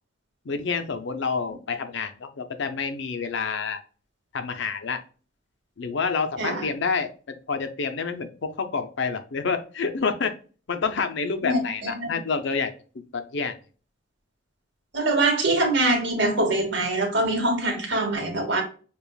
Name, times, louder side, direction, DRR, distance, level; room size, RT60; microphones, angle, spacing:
voice 1, 0.5-3.8 4.3-5.0 5.8-10.3 10.7-12.7 13.1-13.5, left 5 dB, 65° left, 0.6 m, -28 dB
voice 2, 11.4-12.1 14.9-18.6, right 2 dB, 60° right, 1.6 m, -24 dB
7.0 x 2.4 x 2.3 m
head